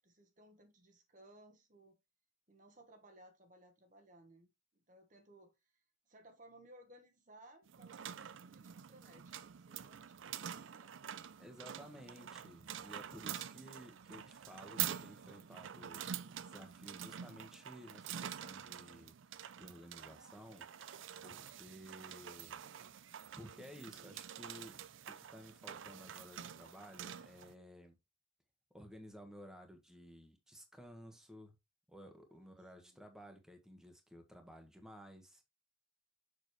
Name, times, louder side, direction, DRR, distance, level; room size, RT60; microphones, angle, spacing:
voice 1, 0.0-2.0 2.5-5.5 6.1-10.9 32.3-33.0, right 1 dB, 40° right, 1.3 m, -62 dB
sound 1, 7.7-27.5, right 9 dB, 75° right, 0.5 m, -47 dB
voice 2, 11.4-22.6 23.4-24.8 25.1-28.0 28.7-31.5 31.9-35.4, equal, 5° right, 1.4 m, -55 dB
7.0 x 6.4 x 3.2 m
head